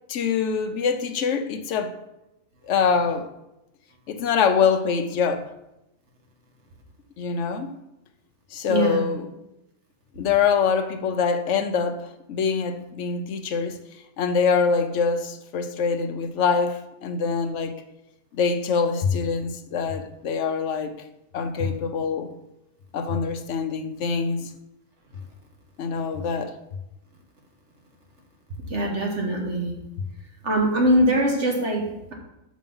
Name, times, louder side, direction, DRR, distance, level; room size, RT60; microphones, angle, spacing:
voice 1, 0.1-1.9 2.7-3.3 4.1-5.5 7.2-7.8 8.5-9.2 10.2-13.8 14.2-17.8 18.3-21.0 21.3-22.3 22.9-24.5 25.8-26.6, left 5 dB, 60° left, 1.0 m, -24 dB
voice 2, 8.7-9.0 28.7-29.8 30.4-32.1, equal, 55° right, 1.6 m, -22 dB
6.7 x 6.2 x 5.5 m
omnidirectional pair, 1.5 m